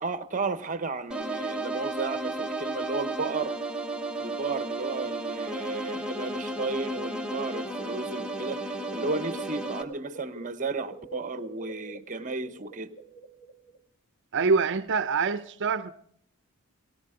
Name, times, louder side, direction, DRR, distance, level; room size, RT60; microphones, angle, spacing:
voice 1, 0.0-3.5 4.2-12.9, right 3 dB, 35° right, 1.0 m, -33 dB
sound 1, 1.1-9.8, right 2 dB, 5° right, 1.1 m, -33 dB
sound 2, 7.3-13.8, right 3 dB, 35° left, 2.7 m, -47 dB
voice 2, 14.3-15.9, right 4 dB, 55° right, 0.6 m, -25 dB
19.0 x 18.5 x 3.8 m
head